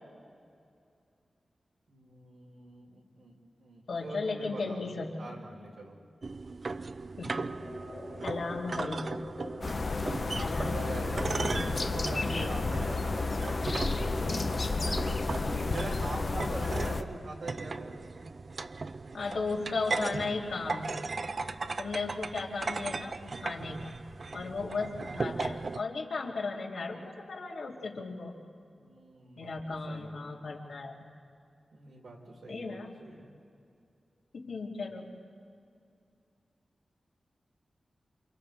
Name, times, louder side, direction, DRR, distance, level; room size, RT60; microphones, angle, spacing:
voice 1, 1.9-3.3 3.6-4.9 5.2-5.9 10.6-15.0 15.5-17.9 28.7-29.5 29.9-30.4 31.7-33.3, right 2 dB, 75° right, -2 dB, 4.7 m, -43 dB
voice 2, 3.9-5.1 7.2-7.5 8.2-9.1 10.4-11.0 19.1-21.0 21.8-23.9 24.3-28.4 29.4-31.0 32.5-33.0 34.3-35.2, left 3 dB, 80° left, -2 dB, 2.9 m, -36 dB
sound 1, 6.2-25.8, right 3 dB, 45° right, 0.4 m, -38 dB
sound 2, 7.4-17.0, left 3 dB, 55° left, 6.4 m, -46 dB
sound 3, 9.6-17.0, left 3 dB, 40° left, 0.8 m, -31 dB
29.0 x 27.5 x 3.5 m, 2.5 s
wide cardioid pair, 155°, 0 cm